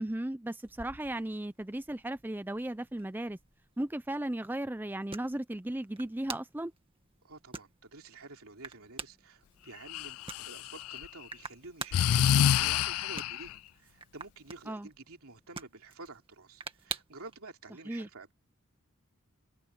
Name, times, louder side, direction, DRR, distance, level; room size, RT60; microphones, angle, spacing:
voice 1, 0.0-3.4 3.8-6.7 14.7-14.9 17.9-18.1, right 1 dB, 10° right, 0.4 m, -36 dB
sound 1, 0.6-17.4, right 5 dB, 25° right, 1.9 m, -48 dB
voice 2, 7.2-18.3, right 3 dB, 75° right, 3.1 m, -50 dB
Breathing, 9.9-11.0 11.9-13.5, left 10 dB, 70° left, 0.3 m, -27 dB
head